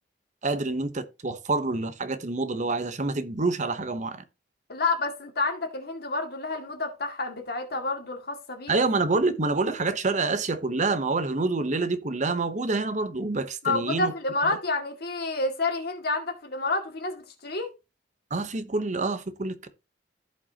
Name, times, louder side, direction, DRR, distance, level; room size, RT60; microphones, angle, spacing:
voice 1, 0.4-4.2 8.7-14.1 18.3-19.7, right 3 dB, 40° right, 0.9 m, -27 dB
voice 2, 4.7-8.7 13.6-17.7, left 3 dB, 60° left, 2.2 m, -29 dB
15.5 x 5.3 x 2.9 m
head